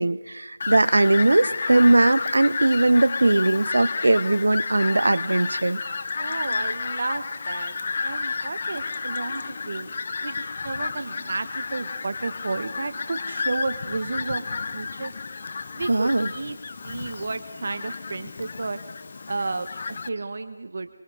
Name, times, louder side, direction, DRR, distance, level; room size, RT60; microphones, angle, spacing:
voice 1, 0.0-5.8 15.9-16.3, right 2 dB, 75° right, 17 dB, 0.9 m, -20 dB
Fowl, 0.6-20.1, left 4 dB, 40° left, 0.7 m, -31 dB
voice 2, 6.2-7.7 8.0-10.0 10.2-14.4 14.7-15.1 15.7-16.6 16.8-18.8 19.3-20.9, right 3 dB, 55° right, 10 dB, 1.2 m, -32 dB
23.5 x 23.0 x 5.0 m, 1.2 s
figure-of-eight pair, 165°, 0 cm